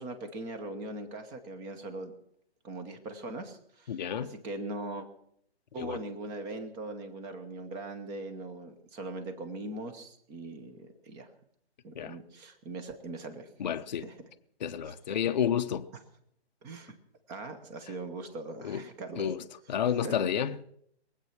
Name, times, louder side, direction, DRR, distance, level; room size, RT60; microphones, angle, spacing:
voice 1, 0.0-2.1 2.6-5.1 5.7-11.3 11.8-13.5 14.0-14.1 14.8-14.9 16.6-16.9 17.3-19.3 20.0-20.2, right 2 dB, 10° right, 0.8 m, -40 dB
voice 2, 3.9-4.4 5.8-6.0 11.9-12.1 13.6-14.0 14.6-15.9 18.6-18.8 19.2-19.4 19.7-20.6, left 8 dB, 40° left, 0.7 m, -30 dB
22.5 x 8.3 x 5.8 m
hypercardioid pair, 160°, 33 cm